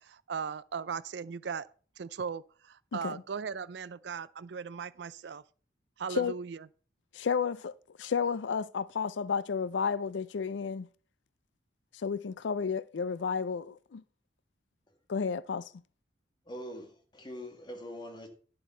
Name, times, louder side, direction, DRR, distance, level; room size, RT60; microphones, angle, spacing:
voice 1, 0.0-1.7 2.0-5.4 6.0-6.6, right 6 dB, 70° right, 0.4 m, -38 dB
voice 2, 2.9-3.2 6.1-6.3 7.1-7.7 8.0-10.9 11.9-14.0 15.1-15.7, left 6 dB, 85° left, 0.4 m, -32 dB
voice 3, 16.5-18.3, equal, 25° left, 1.9 m, -43 dB
10.5 x 7.7 x 4.3 m
head